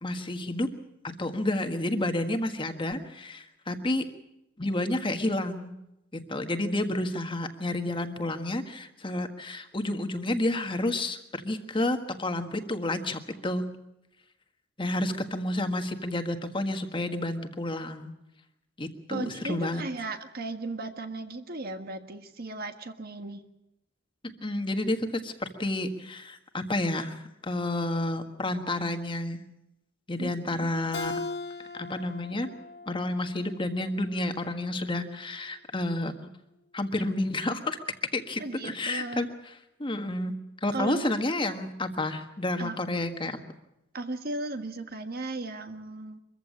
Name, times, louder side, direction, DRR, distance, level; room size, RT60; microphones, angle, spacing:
voice 1, 0.0-0.7 1.2-4.0 4.6-5.7 6.1-13.7 14.8-18.1 18.8-19.8 24.4-29.4 30.1-31.2 31.7-32.5 32.9-36.3 36.7-37.8 38.1-39.3 39.8-40.3 40.6-43.4, left 1 dB, 25° left, 6 dB, 1.6 m, -30 dB
voice 2, 19.1-23.4 30.2-30.7 38.4-39.2 40.7-41.1 42.6-42.8 43.9-46.2, right 2 dB, 50° right, 7 dB, 1.5 m, -36 dB
Keyboard (musical), 30.9-34.2, left 3 dB, 65° left, 1.3 m, -39 dB
23.5 x 15.0 x 8.7 m, 0.87 s
head